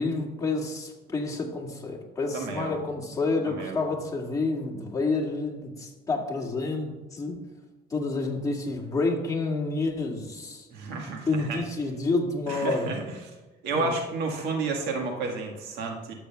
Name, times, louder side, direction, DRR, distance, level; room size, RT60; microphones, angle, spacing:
voice 1, 0.0-7.4 7.9-10.7 11.3-13.0 13.7-13.9, left 3 dB, 20° left, -2 dB, 2.0 m, -29 dB
voice 2, 2.3-2.7 3.5-3.8 10.7-11.6 12.5-13.3 13.6-16.1, right 3 dB, 90° right, 2 dB, 1.6 m, -31 dB
12.5 x 7.8 x 2.3 m, 1.2 s
cardioid pair, 110°, 17 cm